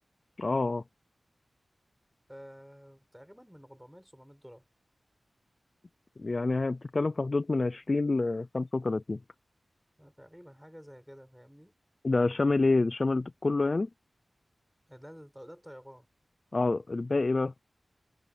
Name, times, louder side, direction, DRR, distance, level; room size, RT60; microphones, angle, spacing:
voice 1, 0.4-0.8 6.2-9.2 12.0-13.9 16.5-17.5, left 3 dB, 45° left, 0.4 m, -27 dB
voice 2, 2.3-4.6 10.0-11.7 14.9-16.1, equal, ahead, 5.8 m, -50 dB
wide cardioid pair, 75°, 0 cm